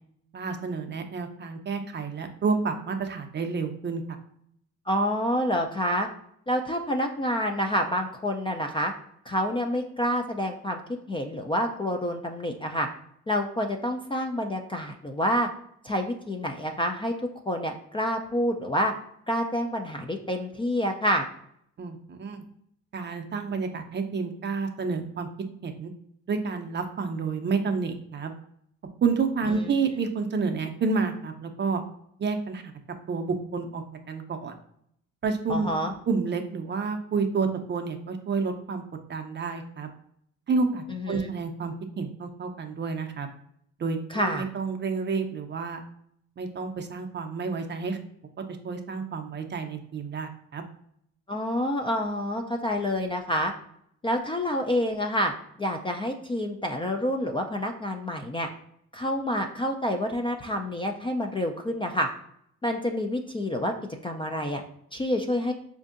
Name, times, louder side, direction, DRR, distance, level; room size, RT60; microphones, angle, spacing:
voice 1, 0.3-4.0 21.8-22.4 22.9-25.3 25.6-25.9 26.3-28.3 29.0-31.8 32.2-32.6 33.1-34.5 35.2-35.8 36.1-38.8 39.1-39.9 40.5-43.3 43.8-45.8 46.4-48.0 48.6-50.6, right 4 dB, 35° right, 5 dB, 0.5 m, -29 dB
voice 2, 4.9-6.1 6.5-8.9 9.3-12.9 13.3-15.5 15.8-17.1 17.5-18.9 19.3-21.3 29.6-29.7 35.5-35.9 40.9-41.3 44.1-44.5 51.3-53.5 54.0-55.3 55.6-58.5 58.9-62.1 62.6-63.7 64.0-64.6 64.9-65.5, equal, 20° left, 3 dB, 0.3 m, -28 dB
4.4 x 2.6 x 2.4 m, 0.71 s
cardioid pair, 90°, 30 cm